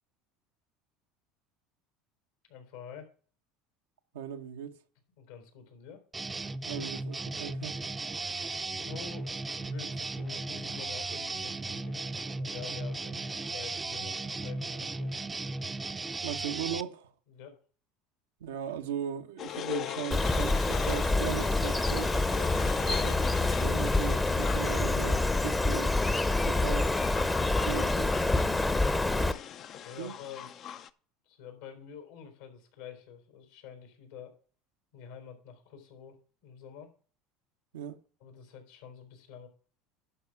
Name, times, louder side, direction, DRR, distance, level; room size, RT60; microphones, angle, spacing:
voice 1, 2.5-3.1 5.2-6.0 8.7-15.1 17.3-17.6 29.8-30.5 31.3-34.4 34.9-36.9 38.2-39.5, left 7 dB, 85° left, 4.0 m, -48 dB
voice 2, 4.1-4.8 6.7-7.8 16.2-17.1 18.4-22.2 22.8-23.1 23.6-25.9 26.5-26.9 27.6-28.1 30.0-30.1 37.7-38.0, right 10 dB, 85° right, 0.9 m, -38 dB
sound 1, 6.1-16.8, right 3 dB, 20° right, 0.6 m, -36 dB
sound 2, 19.4-30.9, left 10 dB, 50° left, 0.6 m, -40 dB
Bird, 20.1-29.3, left 2 dB, 10° left, 0.8 m, -27 dB
11.5 x 5.0 x 5.9 m
hypercardioid pair, 85°, 0 cm